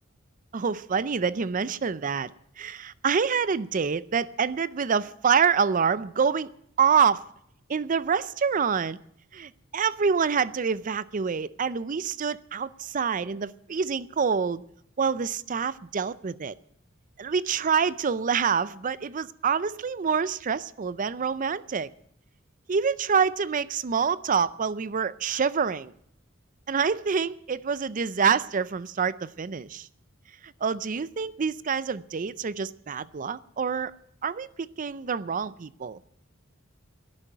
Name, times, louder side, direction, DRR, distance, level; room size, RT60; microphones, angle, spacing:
voice 1, 0.5-2.3 2.6-6.5 6.8-7.2 7.7-9.0 9.3-14.6 15.0-16.5 17.2-21.9 22.7-25.9 26.7-29.9 30.4-33.9 34.2-34.5 34.8-36.0, right 6 dB, 40° right, 0.5 m, -26 dB
12.0 x 10.5 x 8.9 m
head